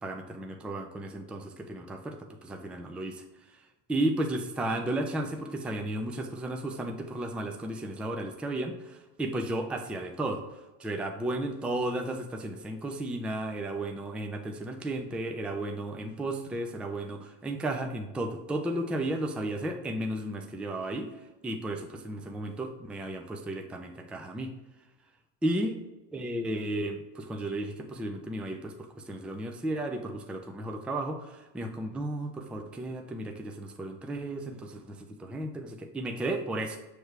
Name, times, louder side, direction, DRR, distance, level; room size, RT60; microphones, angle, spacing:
voice 1, 0.0-3.2 3.9-21.1 21.4-24.5 25.4-25.7 26.1-36.8, right 1 dB, ahead, 4 dB, 0.4 m, -34 dB
6.3 x 3.4 x 4.7 m, 1.1 s
hypercardioid pair, 95°, 50 cm